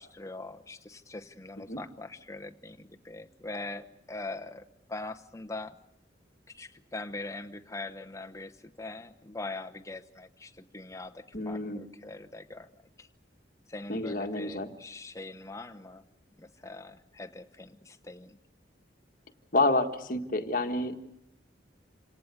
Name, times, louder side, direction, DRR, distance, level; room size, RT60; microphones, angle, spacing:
voice 1, 0.0-4.6 4.9-5.7 6.6-12.7 13.0-13.1 13.7-16.0 16.4-18.4, left 2 dB, 15° left, 7 dB, 0.9 m, -42 dB
voice 2, 11.3-11.8 13.9-14.7 19.5-21.2, left 2 dB, 45° left, 6 dB, 1.6 m, -29 dB
27.5 x 18.0 x 8.2 m, 0.85 s
head